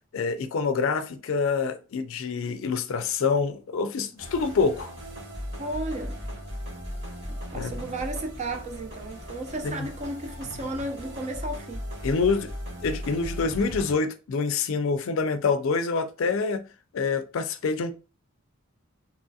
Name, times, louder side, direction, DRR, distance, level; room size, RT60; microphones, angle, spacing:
voice 1, 0.1-4.9 7.5-7.7 9.6-9.9 12.0-12.5 12.8-16.6 16.9-17.9, left 4 dB, 65° left, 0.4 m, -26 dB
sound 1, 4.2-13.9, equal, 55° right, 1.2 m, -37 dB
voice 2, 5.6-6.2 7.3-11.8, right 2 dB, 30° right, 0.4 m, -34 dB
2.9 x 2.3 x 2.6 m
head